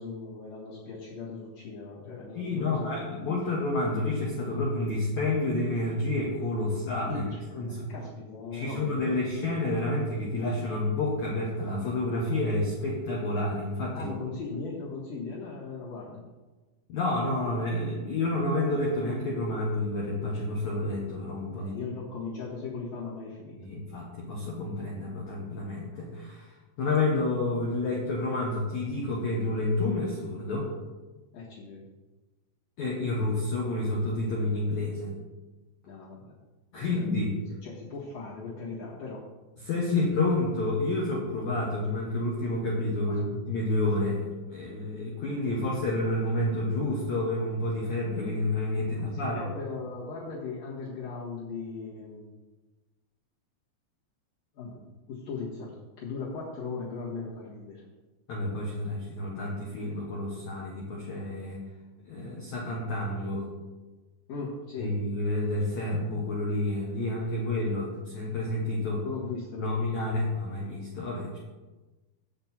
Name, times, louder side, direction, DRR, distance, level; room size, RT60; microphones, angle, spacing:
voice 1, 0.0-3.0 7.0-9.2 13.9-16.2 21.6-23.6 31.3-31.9 35.8-36.3 36.7-36.9 37.5-39.3 43.1-43.2 49.3-52.3 54.5-54.8 55.1-57.8 64.3-65.0 69.0-69.8, left 4 dB, 55° left, -9 dB, 2.8 m, -38 dB
voice 2, 2.4-7.2 7.5-7.9 8.5-14.1 16.9-21.8 23.5-30.7 32.8-35.1 36.7-37.4 39.6-49.4 58.3-61.6 62.0-63.5 64.8-69.0 69.6-71.4, left 2 dB, 75° left, -4 dB, 1.7 m, -29 dB
8.7 x 7.7 x 4.4 m, 1.2 s
omnidirectional pair, 5.4 m